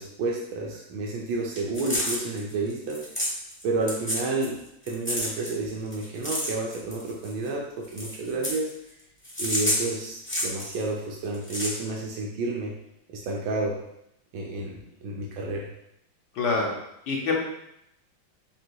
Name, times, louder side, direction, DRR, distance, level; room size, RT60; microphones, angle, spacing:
voice 1, 0.0-3.0 3.6-8.7 9.4-12.8 13.1-13.8 14.3-15.7, right 3 dB, 80° right, -2 dB, 1.5 m, -30 dB
sound 1, 1.5-3.6 3.9-4.6 4.9-7.5 7.8-8.7 9.2-10.8 11.2-11.7, left 1 dB, 10° left, 0.6 m, -29 dB
voice 2, 16.4-16.8 17.1-17.4, left 4 dB, 70° left, -1 dB, 1.3 m, -25 dB
7.7 x 2.8 x 2.2 m, 0.79 s
omnidirectional pair, 2.1 m